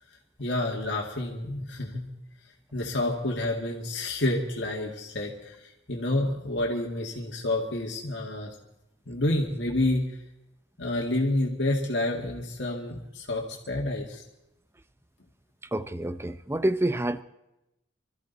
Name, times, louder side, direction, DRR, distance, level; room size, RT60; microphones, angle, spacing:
voice 1, 0.4-2.1 2.7-8.5 9.1-10.0 10.8-14.2, left 1 dB, 70° left, 2.1 m, -29 dB
voice 2, 15.7-17.2, right 1 dB, 15° right, 0.6 m, -27 dB
25.0 x 13.5 x 4.1 m
head